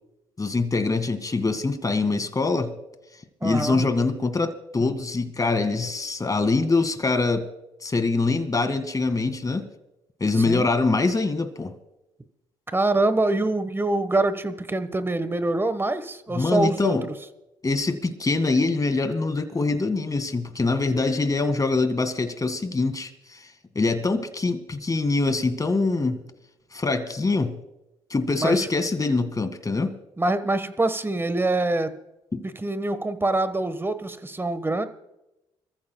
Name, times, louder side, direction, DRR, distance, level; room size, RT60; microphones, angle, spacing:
voice 1, 0.4-2.7 3.4-7.5 7.8-9.7 10.2-11.7 16.3-17.0 17.6-23.5 23.8-26.2 26.7-27.6 28.1-30.0 32.3-32.4, left 3 dB, 25° left, 9 dB, 2.1 m, -24 dB
voice 2, 3.4-3.8 10.3-10.7 12.7-17.1 28.4-28.7 30.2-32.0 32.4-34.8, right 2 dB, 15° right, 12 dB, 1.4 m, -25 dB
26.5 x 14.5 x 2.3 m, 0.91 s
supercardioid pair, 60°, 13 cm